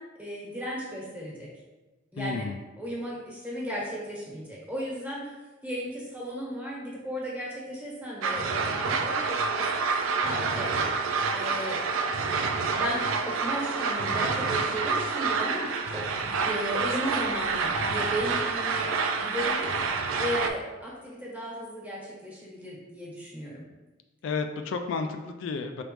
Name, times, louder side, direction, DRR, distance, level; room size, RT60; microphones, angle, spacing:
voice 1, 0.0-1.5 2.1-2.4 2.8-5.4 5.6-10.7 11.3-12.3 12.6-19.8 20.2-23.6, equal, 10° right, -6 dB, 1.3 m, -35 dB
voice 2, 2.2-2.6 24.2-25.8, left 4 dB, 65° left, 6 dB, 0.3 m, -32 dB
sound 1, 8.2-20.5, right 4 dB, 80° right, 0.4 m, -28 dB
5.0 x 3.3 x 3.1 m, 1.2 s
head